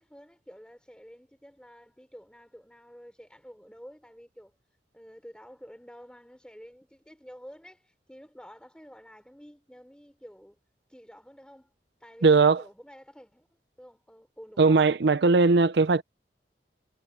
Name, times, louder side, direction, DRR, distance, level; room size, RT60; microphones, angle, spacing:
voice 1, 0.0-4.5 4.9-10.6 10.9-11.7 12.0-14.8, equal, 5° left, 3.3 m, -50 dB
voice 2, 12.2-12.6 14.6-16.0, right 4 dB, 75° right, 0.6 m, -19 dB
head